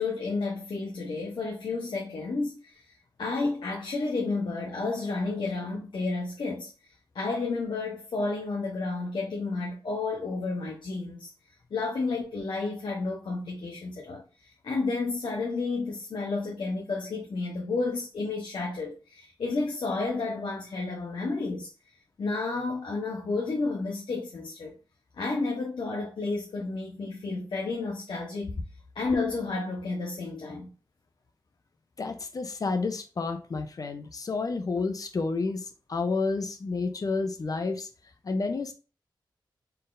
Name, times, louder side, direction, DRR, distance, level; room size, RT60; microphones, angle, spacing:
voice 1, 0.0-2.8 3.2-6.7 7.1-11.3 11.7-21.7 22.2-24.7 25.2-28.6 28.9-30.7, left 3 dB, 75° left, 1.0 m, -31 dB
voice 2, 32.0-37.9 38.2-38.7, left 3 dB, 45° left, 0.7 m, -30 dB
4.4 x 3.9 x 2.5 m
wide cardioid pair, 115°, 8 cm